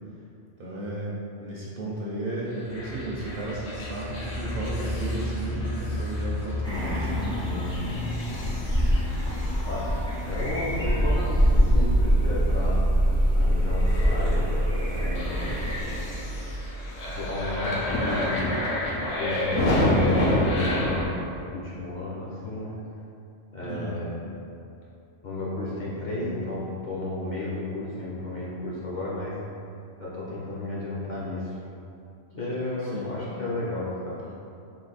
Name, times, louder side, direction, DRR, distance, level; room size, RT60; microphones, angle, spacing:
voice 1, 0.6-1.1 1.4-7.8 23.6-24.0 32.9-33.1, right 2 dB, 55° right, -5 dB, 0.7 m, -34 dB
sound 1, 2.7-21.0, equal, 80° left, 1.1 m, -27 dB
sound 2, 6.6-16.0, equal, 5° left, 0.4 m, -26 dB
voice 2, 9.5-12.8 13.3-14.5 14.8-15.3 17.1-18.5 19.1-21.2 21.5-22.7 23.5-24.2 25.2-29.3 30.0-31.6 32.3-34.2, left 2 dB, 45° left, -8 dB, 0.7 m, -33 dB
3.8 x 2.7 x 4.1 m, 2.6 s
omnidirectional pair, 1.3 m